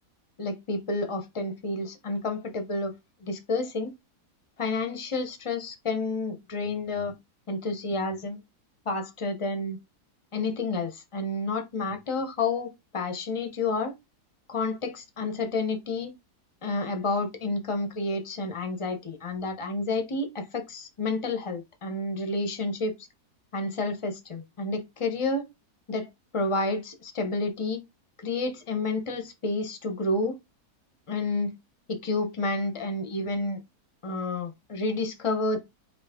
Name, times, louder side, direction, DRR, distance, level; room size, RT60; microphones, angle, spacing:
voice 1, 0.4-2.9 3.2-3.9 4.6-7.1 7.5-8.4 8.9-9.8 10.3-13.9 14.5-16.1 16.6-22.9 23.5-25.5 25.9-26.1 26.3-27.8 28.2-30.4 31.1-31.5 31.9-33.6 34.0-35.6, left 3 dB, 40° left, 0.4 m, -30 dB
5.1 x 2.6 x 3.6 m
omnidirectional pair, 1.7 m